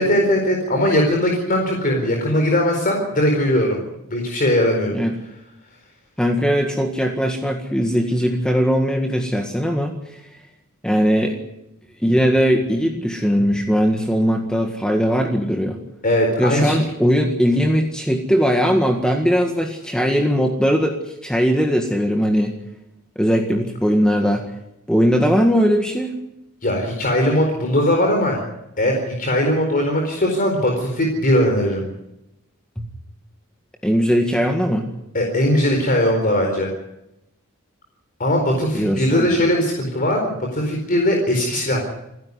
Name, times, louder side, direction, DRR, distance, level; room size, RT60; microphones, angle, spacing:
voice 1, 0.0-3.8 4.1-5.0 16.0-16.8 26.6-28.4 28.8-31.9 35.1-36.7 38.2-41.8, left 1 dB, 40° left, 1 dB, 4.4 m, -19 dB
voice 2, 6.2-9.9 10.8-11.4 12.0-15.8 16.4-21.0 21.2-22.5 23.2-24.4 24.9-26.1 32.8-32.9 33.8-34.9 38.7-39.4, equal, 5° left, 2 dB, 1.8 m, -19 dB
28.5 x 11.0 x 9.8 m, 0.87 s
head